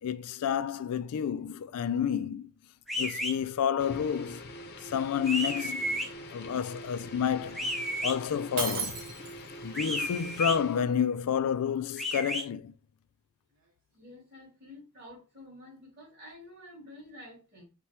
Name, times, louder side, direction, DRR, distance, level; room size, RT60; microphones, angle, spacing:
voice 1, 0.0-2.5 3.0-4.5 4.8-7.7 8.0-9.0 9.6-12.7, left 8 dB, 85° left, 0.3 m, -30 dB
sound 1, 2.9-3.3 5.3-6.1 7.5-8.1 9.7-10.6 12.0-12.4, equal, ahead, 0.5 m, -32 dB
sound 2, 3.8-10.9, left 1 dB, 45° left, 0.6 m, -44 dB
Shatter, 8.6-9.6, right 5 dB, 70° right, 1.2 m, -34 dB
voice 2, 13.9-17.6, left 1 dB, 45° right, 2.3 m, -50 dB
4.6 x 2.2 x 4.2 m
head